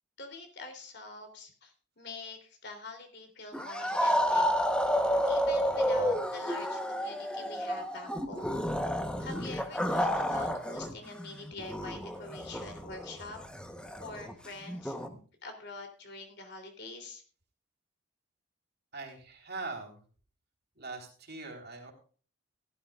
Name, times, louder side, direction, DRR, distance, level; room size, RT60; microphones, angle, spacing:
voice 1, 0.2-4.5 5.3-8.6 9.2-13.4 14.0-17.2, left 3 dB, 50° left, 4 dB, 3.3 m, -45 dB
sound 1, 3.5-10.9 11.2-15.1, equal, 5° left, 1.0 m, -30 dB
voice 2, 18.9-20.1 20.8-21.9, right 3 dB, 50° right, 1 dB, 3.6 m, -42 dB
17.0 x 12.5 x 2.4 m, 0.40 s
head